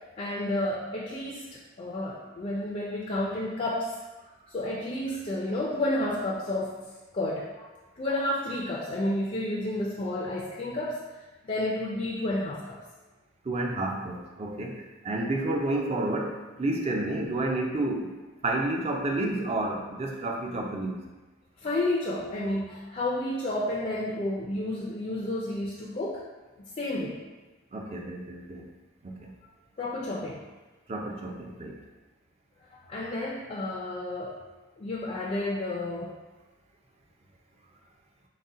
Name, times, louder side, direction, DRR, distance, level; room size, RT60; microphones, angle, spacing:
voice 1, 0.2-3.9 4.5-6.8 7.1-7.7 8.0-11.0 11.4-12.8 21.6-26.2 26.8-27.2 29.8-30.4 32.7-34.4 34.8-36.2, left 1 dB, 30° left, -5 dB, 0.4 m, -31 dB
voice 2, 13.4-21.0 27.7-28.7 29.0-29.3 30.9-31.8, right 2 dB, 30° right, 1 dB, 0.4 m, -30 dB
4.0 x 2.1 x 3.6 m, 1.2 s
head